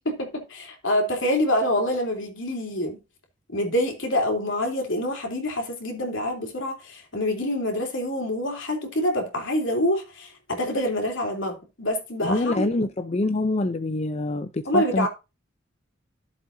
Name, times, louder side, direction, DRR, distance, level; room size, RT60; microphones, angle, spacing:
voice 1, 0.0-3.0 3.5-12.9 14.6-15.1, left 1 dB, 70° left, 3.3 m, -26 dB
voice 2, 12.2-15.1, left 2 dB, 35° left, 0.6 m, -25 dB
13.5 x 7.5 x 2.7 m
head